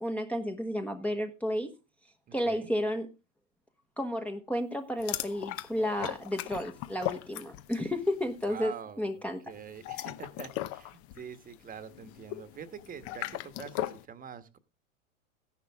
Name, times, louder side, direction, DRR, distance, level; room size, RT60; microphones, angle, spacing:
voice 1, 0.0-1.8 2.3-3.1 4.0-8.7 9.0-9.4, equal, 5° left, 1.2 m, -32 dB
voice 2, 2.3-2.7 8.4-14.6, right 7 dB, 20° right, 1.4 m, -45 dB
sound 1, 5.0-7.9 8.2-8.5 9.7-14.1, left 14 dB, 35° left, 1.0 m, -38 dB
14.5 x 11.0 x 3.6 m
hypercardioid pair, 110°, 39 cm